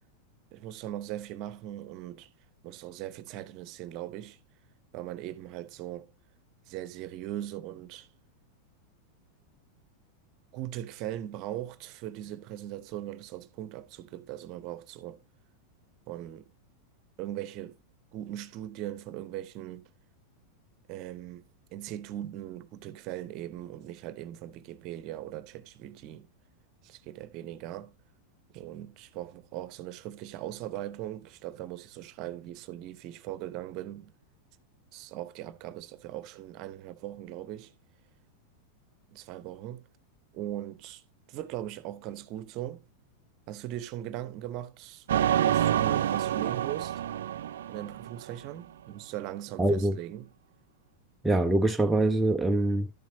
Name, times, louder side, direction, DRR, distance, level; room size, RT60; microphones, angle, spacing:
voice 1, 0.5-2.3 2.6-4.4 4.9-6.1 6.7-8.1 10.5-15.2 16.1-16.5 17.2-17.8 18.1-19.9 20.9-26.3 26.8-27.9 28.5-34.1 34.9-37.7 39.1-39.9 40.3-41.0 41.3-42.8 43.5-45.1 45.4-47.0 47.7-50.3, right 13 dB, 40° right, 0.8 m, -39 dB
sound 1, 45.1-48.5, right 11 dB, 60° right, 0.4 m, -27 dB
voice 2, 49.6-50.0 51.2-52.9, right 2 dB, 5° right, 0.5 m, -24 dB
12.0 x 7.3 x 2.7 m
figure-of-eight pair, 90°, 0 cm